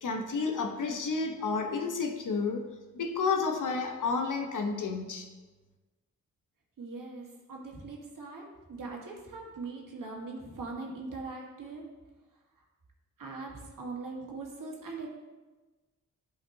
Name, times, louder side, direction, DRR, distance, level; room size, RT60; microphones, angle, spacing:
voice 1, 0.0-2.7 2.9-5.3, left 4 dB, 65° left, 3 dB, 1.0 m, -31 dB
voice 2, 6.8-8.4 8.7-11.9 13.2-15.1, right 3 dB, 70° right, -1 dB, 1.6 m, -41 dB
10.5 x 5.0 x 2.8 m, 1.2 s
cardioid pair, 50°, 33 cm